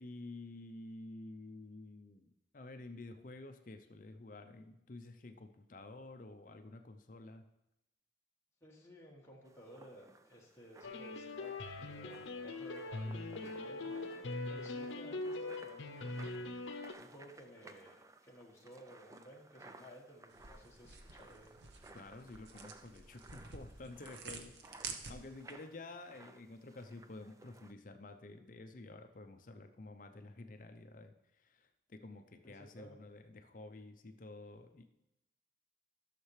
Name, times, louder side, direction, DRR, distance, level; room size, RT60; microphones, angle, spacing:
voice 1, 0.0-7.5 21.9-34.8, left 2 dB, 45° left, 7 dB, 0.5 m, -51 dB
voice 2, 8.6-11.5 11.8-13.9 14.5-16.4 16.9-17.9 18.2-21.6 32.4-33.0, equal, 15° left, -4 dB, 1.4 m, -56 dB
sound 1, 9.4-27.7, right 2 dB, 15° right, 0.3 m, -59 dB
sound 2, 10.8-16.9, left 2 dB, 85° left, 0.7 m, -42 dB
sound 3, 20.3-25.5, right 4 dB, 65° right, 0.8 m, -50 dB
14.5 x 6.6 x 3.2 m, 0.88 s
head